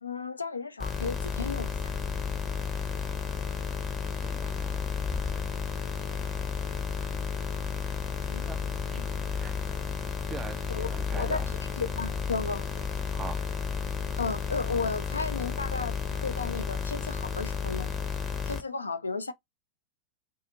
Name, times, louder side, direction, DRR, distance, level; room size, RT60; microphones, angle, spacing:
voice 1, 0.0-1.9 6.1-6.2 8.3-8.4 9.0-9.1 10.7-12.6 14.2-17.9 18.5-19.3, left 4 dB, 75° left, 0.3 m, -34 dB
sound 1, 0.8-18.6, left 6 dB, 20° left, 0.7 m, -32 dB
voice 2, 4.0-4.8 7.1-7.3 8.4-8.6 8.9-9.1 9.3-9.6 10.3-11.5 13.1-13.4, right 6 dB, 20° right, 0.4 m, -42 dB
2.6 x 2.4 x 2.7 m
figure-of-eight pair, 90°, 0 cm